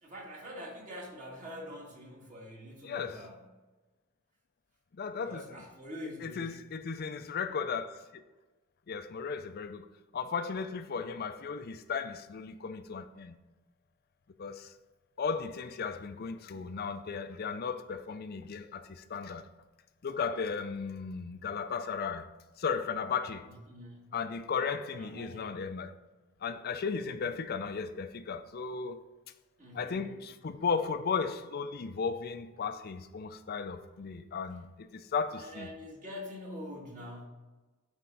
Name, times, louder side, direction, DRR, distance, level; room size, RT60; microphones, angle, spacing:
voice 1, 0.0-3.4 5.2-6.5 23.5-24.1 24.9-25.6 29.6-30.1 35.4-37.2, left 1 dB, 40° right, 1.8 m, -45 dB
voice 2, 2.8-3.2 5.0-5.6 6.2-8.2 8.9-9.9 10.1-13.4 14.4-14.7 15.2-19.5 20.0-22.3 22.6-23.5 24.1-25.9 26.4-29.0 29.7-35.7, left 5 dB, 50° left, 0.4 m, -35 dB
8.3 x 4.4 x 3.9 m
head